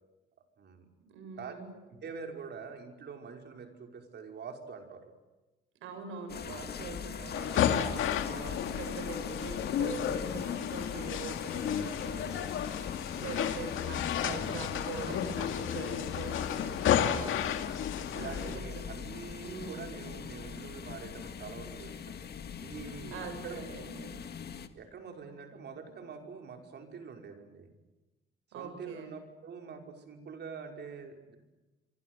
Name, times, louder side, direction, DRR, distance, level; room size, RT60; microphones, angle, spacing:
voice 1, 0.6-0.9 1.3-5.1 15.1-15.3 17.2-17.6 18.1-22.2 22.6-23.7 24.8-27.7 28.5-31.4, right 5 dB, 60° right, 4 dB, 5.4 m, -45 dB
voice 2, 1.1-1.7 5.8-12.7 13.2-16.8 18.1-18.9 19.4-20.1 23.1-24.2 28.5-29.1, right 5 dB, 85° right, 6 dB, 7.2 m, -43 dB
sound 1, 6.3-24.7, left 7 dB, 55° left, 1.9 m, -41 dB
sound 2, 7.3-18.6, left 9 dB, 80° left, 2.4 m, -32 dB
27.0 x 24.0 x 8.1 m, 1.1 s
cardioid pair, 90°, 20 cm